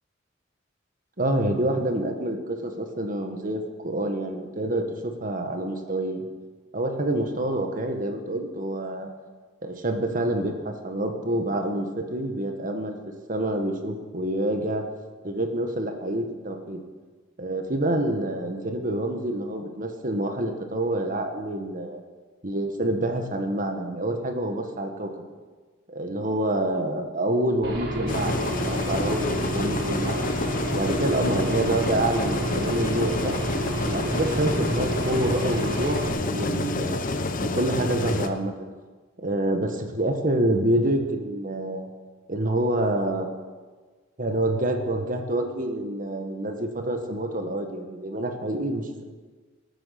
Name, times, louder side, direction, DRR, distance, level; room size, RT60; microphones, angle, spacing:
voice 1, 1.2-6.2 6.7-9.1 9.6-13.0 13.3-14.9 15.2-16.8 17.4-22.0 22.4-25.1 25.9-30.3 30.7-33.4 33.9-37.1 37.4-38.5 39.2-41.9 42.3-43.3 44.2-48.9, right 1 dB, 45° right, 5 dB, 1.7 m, -27 dB
Aircraft / Engine, 27.6-36.1, right 1 dB, 65° right, 3.6 m, -30 dB
sound 1, 28.1-38.3, left 2 dB, 45° left, 1.0 m, -28 dB
20.0 x 9.1 x 6.0 m, 1.4 s
head